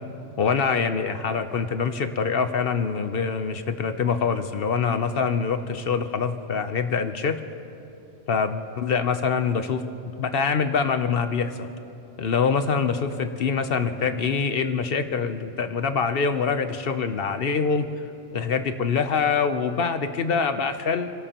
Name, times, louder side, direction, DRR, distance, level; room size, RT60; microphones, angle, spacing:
voice 1, 0.4-7.4 8.3-9.8 10.2-11.5 12.2-17.9 18.3-21.1, left 5 dB, 55° left, 9 dB, 0.7 m, -24 dB
28.0 x 12.0 x 2.9 m, 2.9 s
omnidirectional pair, 1.4 m